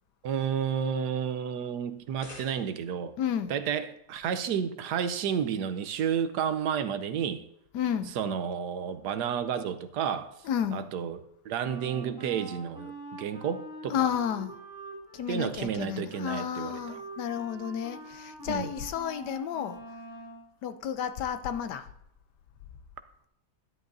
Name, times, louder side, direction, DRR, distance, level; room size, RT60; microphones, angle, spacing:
voice 1, 0.2-3.1 3.5-7.4 8.2-10.3 10.7-14.1 15.3-16.8 18.5-18.7, right 8 dB, 75° right, 1.2 m, -31 dB
sound 1, 1.9-3.1, left 1 dB, 50° left, 2.3 m, -50 dB
voice 2, 3.2-3.5 7.7-8.1 10.4-10.9 13.9-14.5 15.1-19.8 20.6-21.9, left 9 dB, 80° left, 1.3 m, -31 dB
Wind instrument woodwind instrument, 11.6-20.4, right 3 dB, 15° right, 4.2 m, -45 dB
13.0 x 11.5 x 2.6 m
omnidirectional pair, 1.8 m